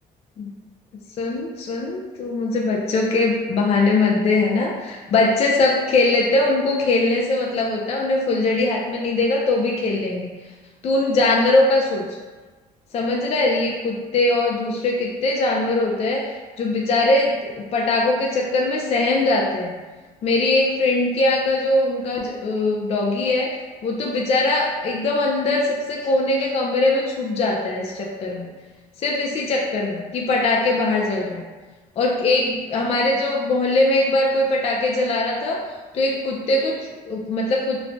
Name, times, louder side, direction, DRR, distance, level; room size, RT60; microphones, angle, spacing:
voice 1, 1.2-10.3 10.8-12.2 12.9-19.8 20.2-23.5 23.8-28.5 29.0-31.4 32.0-35.6 35.9-37.8, left 2 dB, 40° left, -2 dB, 0.4 m, -21 dB
3.0 x 2.1 x 2.6 m, 1.3 s
cardioid pair, 110°, 17 cm